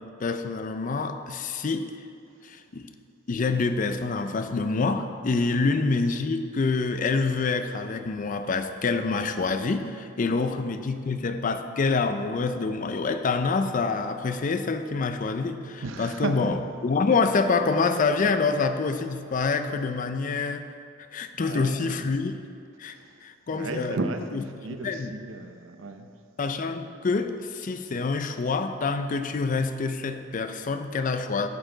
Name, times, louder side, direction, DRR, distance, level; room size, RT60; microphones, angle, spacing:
voice 1, 0.0-1.9 2.4-2.9 3.3-16.6 16.8-20.7 21.1-22.3 22.8-22.9 23.2-24.0 24.3-24.4 24.8-25.1 26.4-31.5, left 4 dB, 45° left, 9 dB, 0.5 m, -26 dB
voice 2, 15.8-16.6 21.3-22.1 22.9-23.2 23.5-26.1, right 3 dB, 80° right, 7 dB, 0.7 m, -34 dB
10.5 x 6.8 x 3.9 m, 2.5 s
head